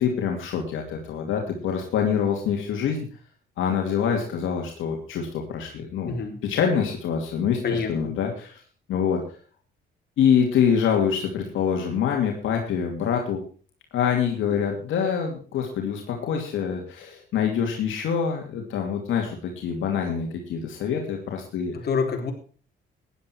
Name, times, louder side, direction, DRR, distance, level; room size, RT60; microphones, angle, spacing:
voice 1, 0.0-3.1 3.6-6.1 6.4-8.6 8.9-9.4 10.2-13.4 13.9-21.7, left 7 dB, 80° left, 1 dB, 2.6 m, -25 dB
voice 2, 6.1-6.4 7.6-8.1 14.5-14.6 21.7-22.3, left 5 dB, 55° left, 2 dB, 3.9 m, -27 dB
15.0 x 10.5 x 4.6 m, 0.40 s
cardioid pair, 90°, 20 cm